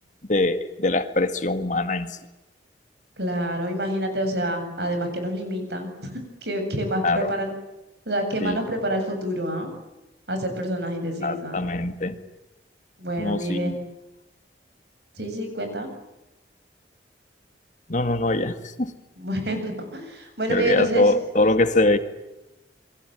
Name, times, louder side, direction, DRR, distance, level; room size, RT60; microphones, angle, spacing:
voice 1, 0.3-2.2 7.0-7.3 8.4-8.6 11.2-12.2 13.2-13.8 17.9-18.9 20.5-22.0, left 2 dB, 45° left, 9 dB, 2.0 m, -23 dB
voice 2, 3.2-6.1 6.4-7.5 8.1-9.7 10.3-11.6 13.0-13.7 15.2-15.9 19.2-21.1, right 1 dB, 65° right, 6 dB, 7.8 m, -28 dB
28.5 x 22.5 x 9.1 m, 0.95 s
head